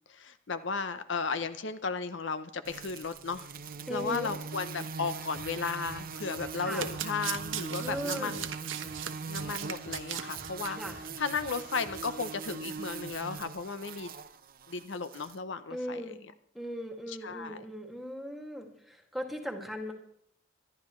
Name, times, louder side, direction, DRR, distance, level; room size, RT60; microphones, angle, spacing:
voice 1, 0.1-3.5 3.9-8.5 9.3-14.1 14.7-16.1 17.1-17.6, left 5 dB, 65° left, 11 dB, 0.7 m, -35 dB
sound 1, 2.6-15.4, right 5 dB, 45° right, 0.7 m, -41 dB
voice 2, 3.9-4.3 6.6-6.9 7.8-8.4 10.8-11.0 15.7-16.2 16.5-19.9, equal, ahead, 2 dB, 2.1 m, -38 dB
sound 2, 5.1-12.2, equal, 85° left, 6.8 m, -53 dB
Domestic sounds home sounds, 6.6-10.7 11.0-11.2 11.5-11.6, right 10 dB, 80° right, 1.1 m, -38 dB
25.0 x 11.5 x 3.2 m, 0.69 s
head